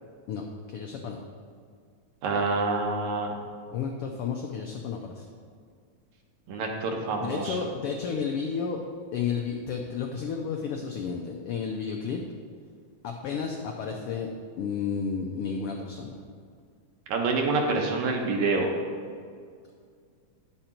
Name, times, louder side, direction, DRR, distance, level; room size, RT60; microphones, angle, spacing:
voice 1, 0.3-1.2 3.7-5.3 7.2-8.8 9.1-12.2 13.0-14.3 14.6-16.2, left 6 dB, 85° left, 2 dB, 1.2 m, -32 dB
voice 2, 2.2-3.3 6.5-7.6 17.1-18.7, right 3 dB, 80° right, 1 dB, 2.4 m, -27 dB
10.0 x 6.6 x 4.3 m, 2.1 s
omnidirectional pair, 3.4 m